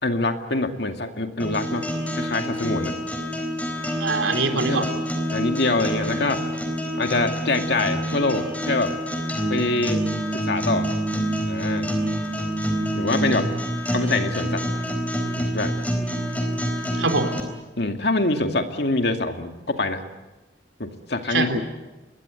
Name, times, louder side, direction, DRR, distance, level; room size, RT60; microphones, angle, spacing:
voice 1, 0.0-1.9 2.1-2.9 4.5-4.9 5.3-6.4 7.0-8.9 9.5-10.0 10.3-10.9 11.5-11.9 12.9-13.5 13.9-14.6 15.4-15.7 17.8-20.0 20.8-21.6, left 2 dB, 60° left, 5 dB, 2.3 m, -25 dB
sound 1, 1.4-17.4, equal, 10° left, 3.8 m, -27 dB
voice 2, 4.0-5.0 17.0-17.3 21.3-21.6, right 3 dB, 85° right, 7 dB, 3.4 m, -23 dB
27.0 x 21.5 x 8.2 m, 1.1 s
head